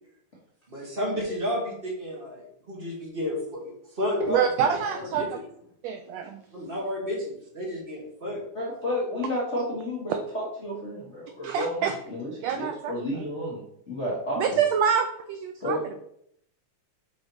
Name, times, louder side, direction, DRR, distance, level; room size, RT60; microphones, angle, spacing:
voice 1, 0.7-4.5 4.8-5.4 6.5-8.4, left 1 dB, 55° right, -3 dB, 0.5 m, -32 dB
voice 2, 4.3-5.4 5.8-6.4 11.4-12.0 12.4-13.3 14.4-16.0, right 7 dB, 85° right, 6 dB, 1.5 m, -26 dB
voice 3, 8.5-14.4 15.6-16.0, equal, 75° left, -5 dB, 0.6 m, -31 dB
6.0 x 3.9 x 4.5 m, 0.73 s
omnidirectional pair, 3.5 m